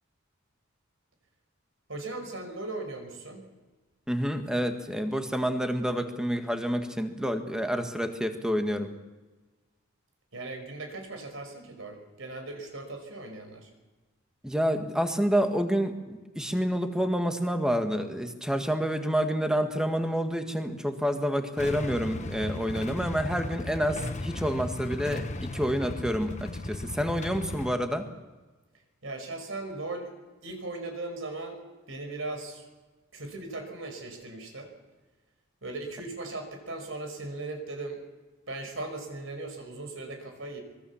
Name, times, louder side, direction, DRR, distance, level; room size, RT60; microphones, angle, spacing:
voice 1, 1.9-3.4 10.3-13.7 29.0-30.1 30.4-32.7 33.1-34.7 35.6-38.0 38.5-40.6, right 2 dB, 65° right, 5 dB, 5.4 m, -38 dB
voice 2, 4.1-8.9 14.4-28.1, equal, 5° right, 6 dB, 1.8 m, -28 dB
Motorcycle / Engine starting / Idling, 21.6-27.7, left 2 dB, 35° left, 1.2 m, -36 dB
25.0 x 21.5 x 7.2 m, 1.2 s
head